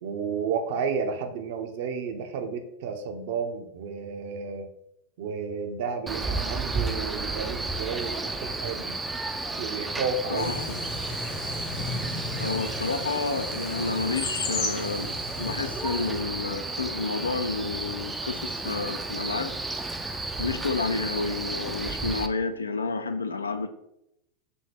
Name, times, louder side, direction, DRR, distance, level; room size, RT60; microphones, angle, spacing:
voice 1, 0.0-4.7 5.2-9.0 9.5-10.5, right 5 dB, 50° right, 0.6 m, -32 dB
Male speech man speaking, 6.1-22.3, right 3 dB, 10° right, 0.4 m, -33 dB
voice 2, 10.3-10.8 12.4-15.1 15.4-19.6 20.4-23.7, left 4 dB, 75° left, 0.4 m, -30 dB
sound 1, 10.4-16.2, left 3 dB, 40° left, 0.9 m, -35 dB
5.2 x 2.7 x 3.4 m
figure-of-eight pair, 90°, 0 cm